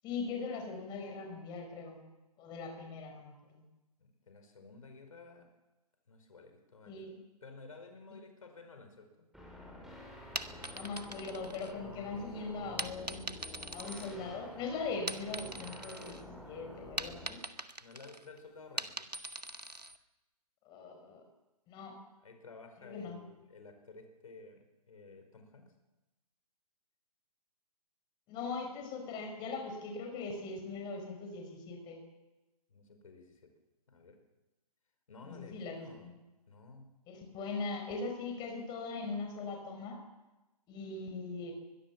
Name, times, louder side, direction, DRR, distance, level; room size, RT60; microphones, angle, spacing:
voice 1, 0.0-2.0 2.4-3.6 6.9-7.2 10.7-13.3 13.7-17.4 20.6-21.2 21.7-22.0 22.8-23.2 28.3-32.0 35.2-36.1 37.1-40.0 40.7-41.5, left 4 dB, 20° left, 3 dB, 5.6 m, -40 dB
voice 2, 4.0-5.5 6.1-7.1 7.4-9.3 12.1-12.6 13.6-13.8 17.8-19.1 22.2-25.6 32.7-33.5 33.9-34.2 35.1-36.1 36.5-36.9, left 3 dB, 60° left, 6 dB, 4.8 m, -53 dB
sound 1, 9.3-17.3, left 1 dB, ahead, 6.4 m, -49 dB
sound 2, 10.2-12.1 12.8-14.6 14.9-16.2 16.5-20.0, right 1 dB, 85° right, 1.7 m, -42 dB
22.5 x 22.5 x 7.2 m, 1.0 s
figure-of-eight pair, 125°, 20 cm